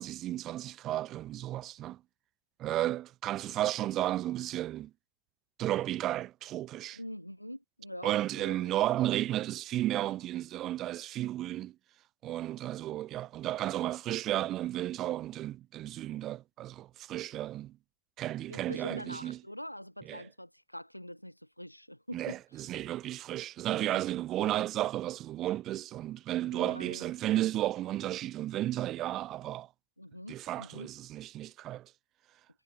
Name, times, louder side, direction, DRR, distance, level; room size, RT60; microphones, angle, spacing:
voice 1, 0.0-2.0 2.6-4.9 5.6-7.0 8.0-11.8 12.2-17.8 18.2-19.4 20.1-20.2 22.1-29.7 30.3-31.9, right 14 dB, 35° right, 2.7 m, -33 dB
voice 2, 6.9-8.7 18.5-22.4 23.9-24.0 26.5-27.1 30.0-30.9, equal, 90° left, 4.7 m, -44 dB
figure-of-eight pair, 90°, 0 cm